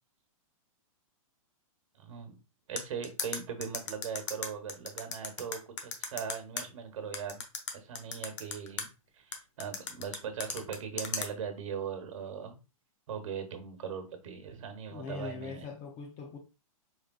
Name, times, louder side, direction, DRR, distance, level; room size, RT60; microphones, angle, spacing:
voice 1, 1.9-2.3 2.7-7.4 7.7-8.9 9.1-12.6 13.1-15.7, right 7 dB, 65° right, 1.2 m, -39 dB
sound 1, 2.8-6.6 7.1-8.8 9.3-11.3, left 6 dB, 55° left, 1.0 m, -35 dB
voice 2, 14.9-16.4, left 5 dB, 20° left, 0.4 m, -41 dB
4.8 x 3.6 x 2.3 m
hypercardioid pair, 165°, 18 cm